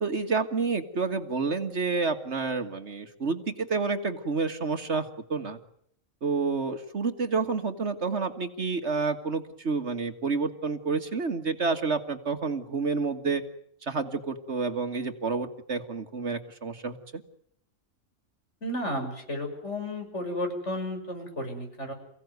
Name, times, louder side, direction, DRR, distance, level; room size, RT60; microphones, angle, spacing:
voice 1, 0.0-5.6 6.2-13.4 13.8-17.2, right 4 dB, 55° right, 8 dB, 1.9 m, -29 dB
voice 2, 18.6-21.9, left 1 dB, 60° left, 3 dB, 6.4 m, -33 dB
29.0 x 16.5 x 9.4 m, 0.70 s
omnidirectional pair, 1.4 m